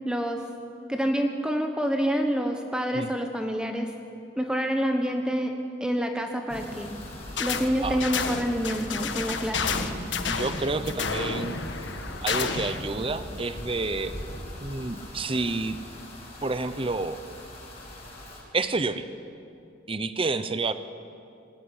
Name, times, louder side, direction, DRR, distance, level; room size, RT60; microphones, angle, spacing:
voice 1, 0.0-0.4 0.9-3.9 4.4-5.5 5.8-6.9 7.4-9.6, equal, 5° right, 4 dB, 1.1 m, -27 dB
sound 1, 6.5-18.4, left 1 dB, 35° left, 6.1 m, -39 dB
sound 2, 7.4-7.7 8.0-12.8, left 5 dB, 85° left, 1.4 m, -30 dB
voice 2, 10.3-11.6 12.2-14.1 14.6-15.8 16.4-17.2 18.5-19.1 19.9-20.7, right 3 dB, 30° right, 12 dB, 0.8 m, -29 dB
19.5 x 16.5 x 9.9 m, 2.6 s
head